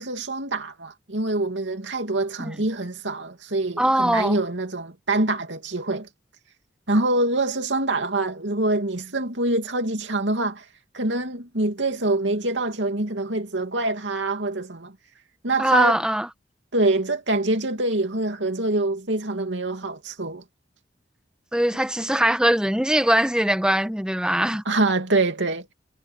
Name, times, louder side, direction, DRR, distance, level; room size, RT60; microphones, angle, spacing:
voice 1, 0.0-6.1 6.9-10.6 10.9-15.0 15.4-16.0 16.7-20.4 24.7-25.7, right 2 dB, 80° right, 2.6 m, -25 dB
voice 2, 3.8-4.4 15.6-16.3 21.5-24.6, right 1 dB, 5° right, 1.2 m, -21 dB
head